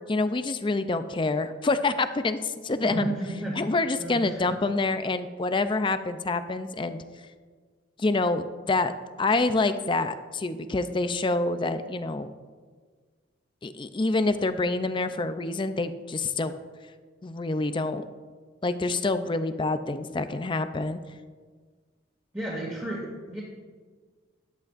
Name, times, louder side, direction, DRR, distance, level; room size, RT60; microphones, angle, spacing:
voice 1, 0.1-3.1 3.6-7.0 8.0-8.9 9.2-12.3 13.6-16.5 17.2-18.0 18.6-21.0, left 3 dB, 25° left, 10 dB, 0.5 m, -27 dB
voice 2, 2.8-3.6 4.0-4.5 22.3-23.4, right 1 dB, 15° right, -7 dB, 2.5 m, -32 dB
13.5 x 11.5 x 2.5 m, 1.5 s
head